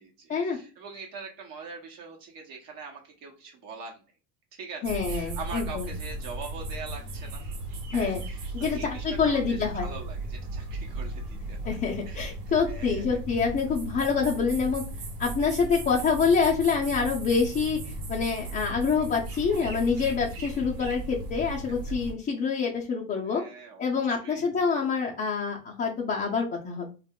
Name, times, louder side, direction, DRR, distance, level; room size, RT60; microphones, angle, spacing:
voice 1, 0.0-4.0 4.5-7.4 7.9-11.8 12.1-12.3 12.7-13.2 20.4-20.6 23.2-23.9 24.2-24.4, right 4 dB, 50° right, 1 dB, 0.9 m, -43 dB
voice 2, 4.8-5.9 7.9-8.2 8.5-9.9 11.6-14.8 15.2-23.4 23.8-26.9, left 5 dB, 20° left, -4 dB, 0.6 m, -26 dB
sound 1, 4.8-22.1, right 2 dB, 90° right, 1.1 m, -36 dB
2.3 x 2.0 x 3.6 m, 0.35 s
supercardioid pair, 115°, 43 cm